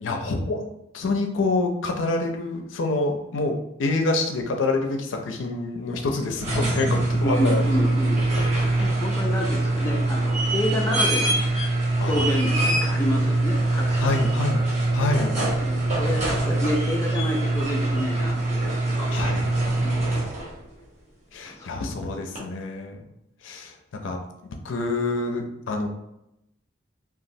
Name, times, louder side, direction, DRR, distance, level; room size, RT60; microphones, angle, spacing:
voice 1, 0.0-7.6 8.6-9.0 12.0-12.3 14.0-14.6 14.9-15.4 19.1-19.5 21.3-23.0 23.4-23.7 24.0-24.2 24.6-25.9, left 2 dB, 80° left, 3 dB, 0.4 m, -27 dB
sound 1, 6.2-20.6 22.4-22.5, right 2 dB, 35° right, 0.8 m, -23 dB
voice 2, 7.2-8.2 8.8-11.5 12.0-14.1 15.7-19.1 19.8-20.2 21.5-21.7, left 1 dB, 15° left, -1 dB, 0.3 m, -29 dB
3.0 x 2.3 x 2.6 m, 0.85 s
head